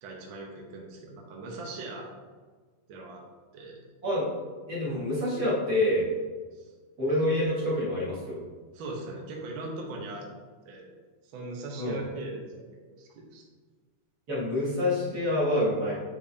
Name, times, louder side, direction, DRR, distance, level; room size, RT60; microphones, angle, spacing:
voice 1, 0.0-2.1 2.9-3.2 3.5-3.8 6.6-6.7 8.7-10.2 10.6-10.9 11.3-12.6 12.9-13.4, right 2 dB, 90° right, -1 dB, 1.1 m, -39 dB
voice 2, 4.7-6.1 7.0-8.4 11.8-12.0 14.3-15.9, left 1 dB, 35° right, -8 dB, 1.7 m, -27 dB
8.5 x 5.2 x 2.8 m, 1.4 s
omnidirectional pair, 3.9 m